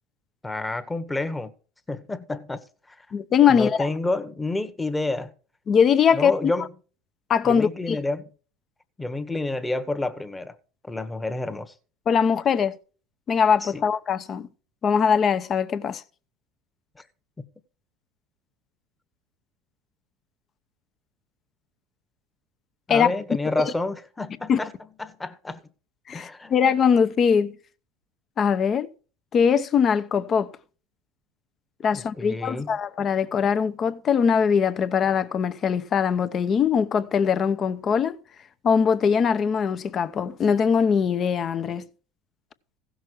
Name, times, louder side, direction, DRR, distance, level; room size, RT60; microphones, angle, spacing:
voice 1, 0.4-1.5 1.9-2.6 2.9-3.0 3.5-5.3 6.1-6.7 7.4-8.3 9.0-10.5 10.8-11.7 13.6-13.9 22.9-24.7 25.0-25.6 26.1-26.6 31.9-32.8, left 2 dB, 10° left, 1.2 m, -29 dB
voice 2, 3.1-3.9 5.7-6.5 7.3-8.0 12.1-12.8 13.3-14.5 14.8-16.0 22.9-23.1 24.5-24.6 26.1-27.6 28.4-28.9 29.3-30.5 31.8-38.2 38.6-41.9, left 7 dB, 40° left, 0.8 m, -21 dB
16.0 x 6.3 x 4.6 m
supercardioid pair, 95°, 0 cm